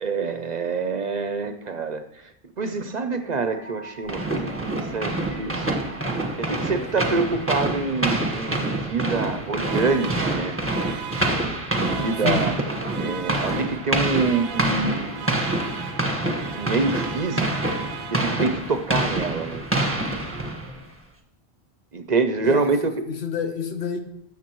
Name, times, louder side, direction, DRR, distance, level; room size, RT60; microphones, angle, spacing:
voice 1, 0.0-2.3 2.6-5.7 6.4-10.6 11.8-12.5 13.0-15.4 16.5-17.7 18.1-19.6 21.9-23.0, right 4 dB, 50° right, 9 dB, 0.6 m, -26 dB
sound 1, 2.8-19.1, equal, 30° left, 2.3 m, -47 dB
sound 2, 4.1-20.9, right 2 dB, 15° right, 1.1 m, -26 dB
voice 2, 6.5-6.9 12.2-12.5 22.4-22.7 23.1-24.0, left 6 dB, 80° left, 6 dB, 1.3 m, -29 dB
sound 3, 9.6-18.6, right 9 dB, 90° right, 0.8 m, -38 dB
13.5 x 7.2 x 3.0 m, 0.78 s
omnidirectional pair, 1.1 m